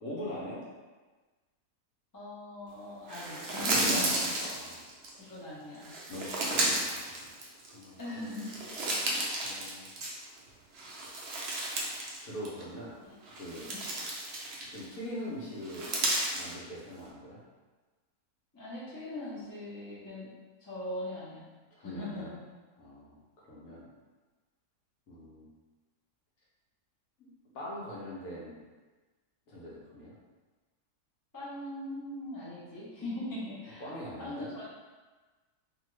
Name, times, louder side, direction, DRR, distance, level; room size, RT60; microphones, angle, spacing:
voice 1, 0.0-0.6 3.6-4.8 5.2-5.3 6.1-7.3 7.7-8.5 9.4-9.8 12.2-13.0 13.4-13.7 14.7-15.9 16.3-17.4 21.8-22.3 22.8-23.2 23.5-23.9 25.1-25.4 27.2-27.3 27.5-28.6 29.5-30.1 33.8-34.5, equal, 65° left, -6 dB, 1.1 m, -42 dB
voice 2, 2.1-4.2 5.1-5.9 8.0-8.5 13.0-13.2 13.6-13.8 18.5-21.5 21.8-22.4 31.3-33.9 34.2-34.6, left 1 dB, 25° left, -9 dB, 0.4 m, -40 dB
sound 1, 3.1-5.1 5.8-7.8 8.2-10.4 10.7-12.2 12.5-12.6 13.2-14.9 15.6-16.5, right 2 dB, 90° right, 0.5 m, -33 dB
2.8 x 2.4 x 3.1 m, 1.3 s
omnidirectional pair, 1.7 m